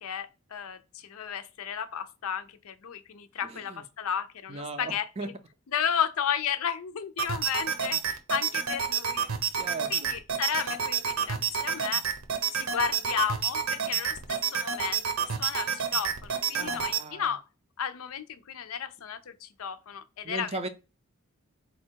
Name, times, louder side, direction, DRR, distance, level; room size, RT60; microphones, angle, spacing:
voice 1, 0.0-5.3 5.7-9.3 9.9-12.0 12.5-15.0 15.4-17.4 17.8-20.6, left 8 dB, 75° left, 0.5 m, -33 dB
voice 2, 3.4-3.8 4.5-5.3 9.5-10.1 16.5-17.3 20.2-20.7, right 3 dB, 25° right, 0.4 m, -37 dB
sound 1, 7.2-17.0, right 7 dB, 70° right, 0.7 m, -29 dB
4.2 x 2.3 x 4.5 m
head